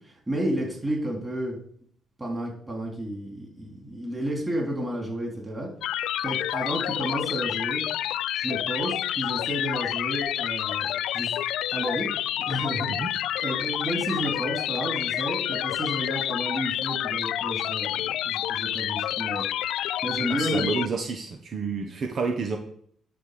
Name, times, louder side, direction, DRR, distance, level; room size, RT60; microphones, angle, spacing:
voice 1, 0.3-1.6 2.2-5.7 6.2-7.8 8.4-11.4 11.7-12.1 12.5-12.9 13.4-19.5 20.0-20.9, right 1 dB, 15° right, -1 dB, 3.7 m, -31 dB
sound 1, 5.8-20.9, left 12 dB, 85° left, 0.3 m, -29 dB
voice 2, 20.3-22.6, right 4 dB, 55° right, 4 dB, 1.2 m, -29 dB
10.5 x 4.5 x 6.7 m, 0.62 s
cardioid pair, 90°, 0 cm